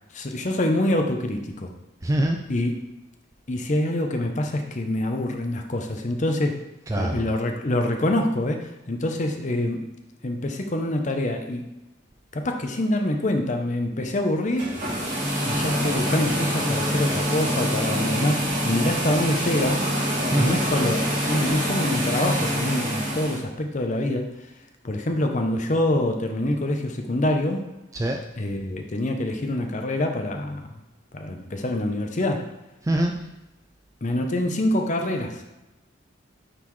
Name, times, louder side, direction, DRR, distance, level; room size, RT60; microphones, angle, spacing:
voice 1, 0.1-1.7 2.5-2.7 3.5-6.6 7.0-9.8 10.2-11.7 12.3-14.7 15.4-19.9 20.2-24.3 24.8-27.6 28.4-30.7 31.1-32.4 34.0-35.4, left 1 dB, 35° left, 4 dB, 0.7 m, -25 dB
voice 2, 2.0-2.4 6.9-7.2 20.3-20.6 27.9-28.2 32.8-33.1, right 1 dB, 15° right, 3 dB, 0.3 m, -23 dB
sound 1, 14.5-23.4, equal, 40° right, 2.4 m, -25 dB
9.0 x 4.1 x 3.2 m, 0.99 s
head